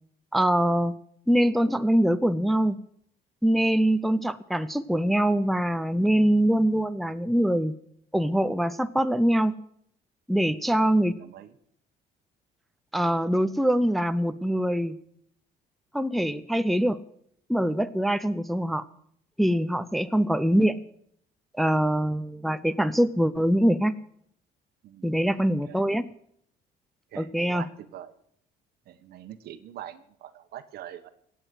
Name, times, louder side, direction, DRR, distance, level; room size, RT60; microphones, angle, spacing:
voice 1, 0.3-1.0 1.3-2.8 3.4-7.7 8.1-9.6 10.3-11.1 12.9-15.0 15.9-17.0 17.5-18.9 19.4-20.8 21.6-24.0 25.0-26.1 27.2-27.7, right 1 dB, ahead, 11 dB, 0.6 m, -23 dB
voice 2, 11.2-11.5 24.8-25.0 25.6-25.8 27.1-28.1 28.9-31.1, right 11 dB, 70° right, 10 dB, 1.3 m, -43 dB
17.0 x 8.2 x 7.7 m, 0.67 s
cardioid pair, 110°, 17 cm